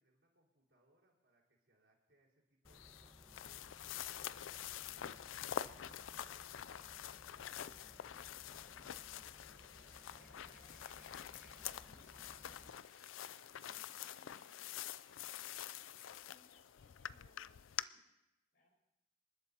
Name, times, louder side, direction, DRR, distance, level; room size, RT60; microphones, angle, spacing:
voice 1, 0.0-4.1, right 2 dB, 65° right, -3 dB, 4.7 m, -75 dB
sound 1, 2.6-12.7, equal, 10° left, 1.1 m, -62 dB
sound 2, 2.7-17.8, left 10 dB, 85° left, 0.4 m, -47 dB
Chirp tweet / Buzz, 9.5-16.2, right 5 dB, 45° right, 1.1 m, -70 dB
voice 2, 9.7-10.8 11.3-18.1 18.5-18.7, left 1 dB, 55° left, -2 dB, 4.9 m, -74 dB
27.5 x 12.0 x 2.9 m, 0.92 s
head